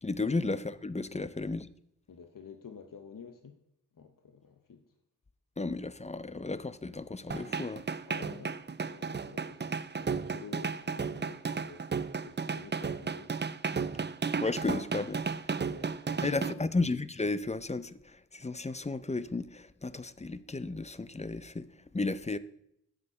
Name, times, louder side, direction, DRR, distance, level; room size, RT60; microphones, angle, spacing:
voice 1, 0.0-1.7 5.6-7.9 14.4-15.2 16.2-22.4, left 3 dB, 20° left, 0.5 m, -33 dB
voice 2, 2.1-3.6 3.9-4.9 8.0-13.4 15.5-16.8, left 6 dB, 85° left, 0.7 m, -50 dB
sound 1, 7.3-16.5, right 5 dB, 35° right, 0.4 m, -34 dB
7.7 x 7.6 x 5.6 m
wide cardioid pair, 50°, 32 cm